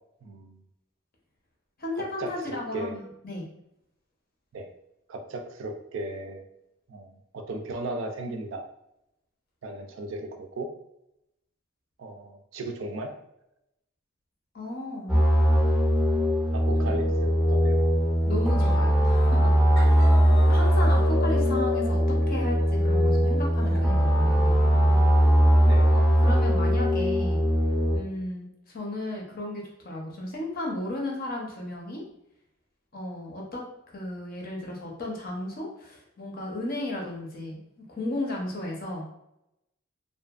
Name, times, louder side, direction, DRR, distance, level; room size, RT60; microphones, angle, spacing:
voice 1, 0.2-0.6 2.0-2.9 4.5-4.7 5.1-6.4 6.9-8.6 9.6-10.7 12.0-13.1 16.5-17.8 25.6-25.9, right 2 dB, 65° right, 5 dB, 0.4 m, -36 dB
voice 2, 1.8-3.5 14.5-15.2 18.3-19.5 19.8-20.2 20.5-24.6 24.9-25.1 25.9-27.5 27.9-32.0 32.9-37.6 37.9-39.0, left 1 dB, 45° left, -1 dB, 0.6 m, -34 dB
sound 1, 15.1-28.0, equal, ahead, 0.5 m, -21 dB
sound 2, 18.6-18.9 19.1-19.5 19.8-23.8, left 3 dB, 80° left, 0.7 m, -38 dB
2.6 x 2.4 x 2.3 m, 0.82 s
head